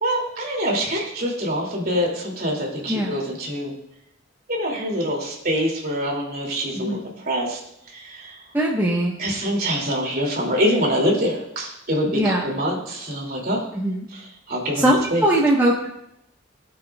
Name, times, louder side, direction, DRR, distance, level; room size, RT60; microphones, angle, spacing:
voice 1, 0.0-3.7 4.5-7.0 7.3-7.6 7.9-8.4 9.2-13.6 14.5-14.8 15.1-15.2, equal, 50° right, -1 dB, 2.8 m, -25 dB
voice 2, 6.8-7.1 8.5-9.2 12.1-12.5 13.7-14.1 14.7-15.9, right 1 dB, 10° right, -4 dB, 1.2 m, -21 dB
18.0 x 8.2 x 2.4 m, 0.78 s
head